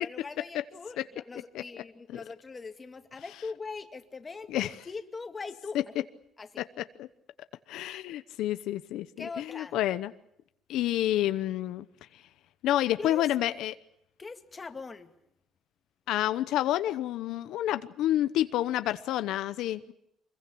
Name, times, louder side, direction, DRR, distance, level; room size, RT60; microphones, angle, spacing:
voice 1, 0.0-6.0 6.4-6.6 9.2-9.8 13.0-13.3 14.2-15.1, left 4 dB, 25° left, 2.1 m, -41 dB
voice 2, 6.8-7.1 7.7-10.1 10.7-11.9 12.6-13.8 16.1-19.8, left 13 dB, 80° left, 0.9 m, -29 dB
25.5 x 22.0 x 8.5 m
cardioid pair, 135°, 0 cm